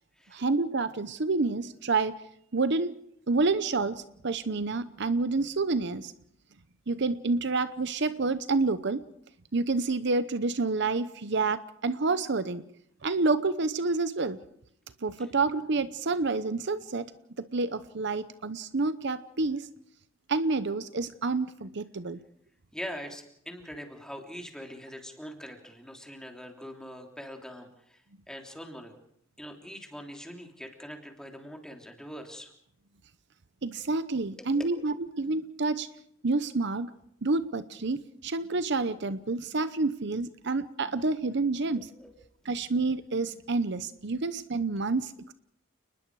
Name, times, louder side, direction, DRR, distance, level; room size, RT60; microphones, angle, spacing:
voice 1, 0.3-2.2 2.5-3.0 3.3-6.1 6.9-9.0 9.5-12.6 13.0-14.4 15.0-19.7 20.3-22.2 33.6-35.9 36.2-36.9 37.2-41.9 42.5-45.3, right 3 dB, 60° right, 13 dB, 0.8 m, -28 dB
voice 2, 22.7-28.9 29.4-32.5 34.4-34.6 41.7-42.1, equal, 5° left, 2 dB, 3.2 m, -43 dB
30.0 x 20.5 x 4.8 m, 0.71 s
head